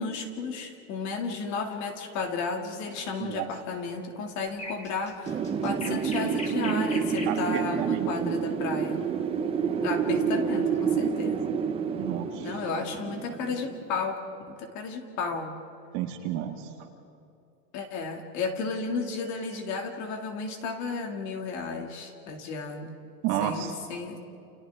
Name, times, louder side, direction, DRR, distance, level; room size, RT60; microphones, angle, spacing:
voice 1, 0.0-9.0 9.8-11.5 12.4-15.6 17.7-23.0 23.4-24.2, left 4 dB, 35° left, 4 dB, 2.4 m, -33 dB
sound 1, 4.5-7.5 9.5-9.8, left 2 dB, 15° left, 2.1 m, -40 dB
Wind, 5.3-14.0, right 6 dB, 10° right, 0.7 m, -28 dB
voice 2, 7.3-8.4 12.0-12.6 15.9-16.7 23.2-23.7, right 10 dB, 40° right, 4 dB, 1.8 m, -31 dB
29.5 x 29.0 x 3.6 m, 2.6 s
hypercardioid pair, 140°, 49 cm